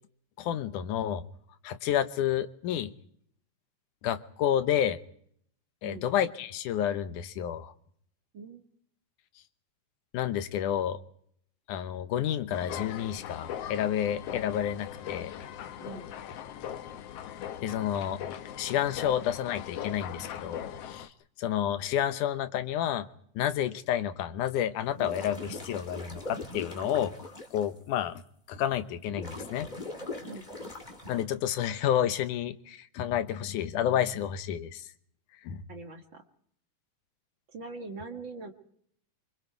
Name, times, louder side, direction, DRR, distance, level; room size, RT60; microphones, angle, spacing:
voice 1, 0.4-1.2 1.6-2.9 4.0-5.0 5.8-7.7 10.1-11.0 11.7-15.3 17.6-18.2 18.6-21.1 21.4-23.1 23.4-27.1 27.5-28.2 28.5-29.7 31.1-34.9 35.4-35.6, left 10 dB, 85° left, 11 dB, 2.5 m, -30 dB
sound 1, 12.5-21.1, left 10 dB, 65° left, 1.8 m, -40 dB
sound 2, 24.8-27.6 28.2-28.3 29.1-31.2, left 2 dB, 15° left, 1.7 m, -41 dB
voice 2, 35.7-36.2 37.5-38.5, right 3 dB, 45° right, 4 dB, 2.1 m, -42 dB
25.5 x 24.0 x 4.6 m, 0.66 s
omnidirectional pair, 3.5 m